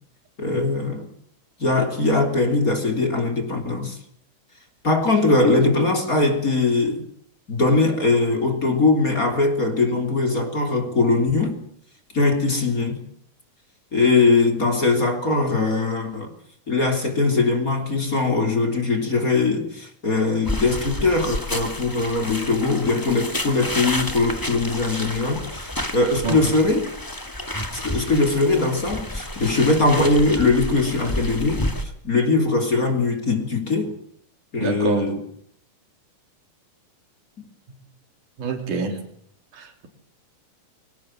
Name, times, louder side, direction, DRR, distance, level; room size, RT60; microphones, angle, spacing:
voice 1, 0.4-1.1 1.6-4.0 4.8-7.0 7.5-11.6 12.1-13.0 13.9-16.3 16.7-26.9 27.7-34.0 34.5-35.2, left 3 dB, 25° left, 3.6 m, -21 dB
sound 1, 20.4-31.8, left 1 dB, 10° left, 1.3 m, -30 dB
voice 2, 34.6-35.1 38.4-39.1 39.5-39.9, right 4 dB, 65° right, 4.9 m, -26 dB
24.5 x 18.0 x 7.7 m
omnidirectional pair, 3.8 m